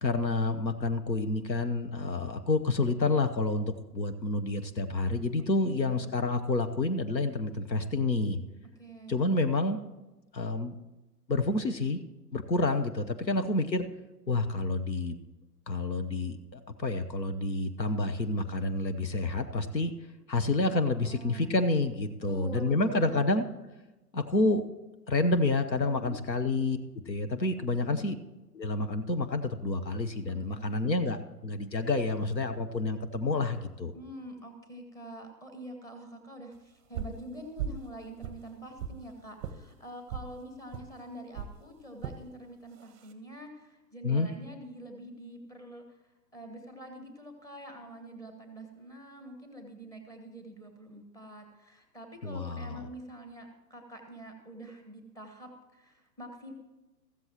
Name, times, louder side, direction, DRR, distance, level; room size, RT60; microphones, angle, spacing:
voice 1, 0.0-8.4 9.1-9.8 10.3-10.7 11.3-12.0 12.3-13.9 14.3-15.2 15.7-19.9 20.3-23.4 24.1-24.6 25.1-26.8 27.1-28.2 28.5-33.9 44.0-44.3 52.2-52.9, left 2 dB, 90° left, 8 dB, 1.1 m, -29 dB
voice 2, 5.6-6.1 8.8-9.2 13.2-13.4 20.6-21.5 22.2-23.3 25.8-26.1 27.6-28.1 30.3-30.9 33.9-46.0 46.3-56.5, right 1 dB, 5° left, 4 dB, 1.2 m, -46 dB
sound 1, 36.9-37.2 37.6-37.9 38.2-39.0 39.4-39.6 40.1-40.3 40.7-40.9 41.3-41.5 42.0-42.2 42.8-43.1, right 7 dB, 20° right, 0.7 m, -37 dB
14.5 x 13.5 x 2.9 m, 1.1 s
figure-of-eight pair, 120°, 50 cm